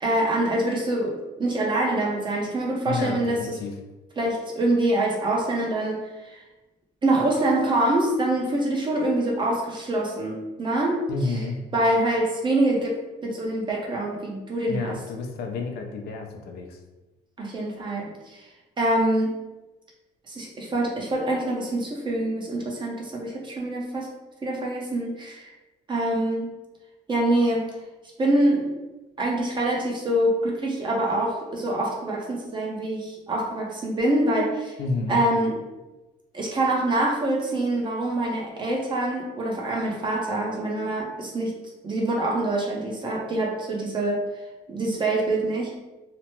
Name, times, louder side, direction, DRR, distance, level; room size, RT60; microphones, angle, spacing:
voice 1, 0.0-3.6 4.2-6.0 6.3-6.4 7.0-11.3 11.7-15.0 17.4-18.4 18.8-19.3 20.3-24.1 24.4-25.5 25.9-26.5 27.1-27.7 28.2-28.7 29.2-34.7 35.1-35.6 36.3-41.5 41.8-44.2 44.7-45.7, right 1 dB, 30° right, -1 dB, 0.7 m, -25 dB
voice 2, 2.9-3.7 11.1-11.6 14.7-16.8 34.8-35.2, left 3 dB, 70° left, 3 dB, 0.5 m, -30 dB
2.9 x 2.1 x 3.0 m, 1.1 s
cardioid pair, 110°, 17 cm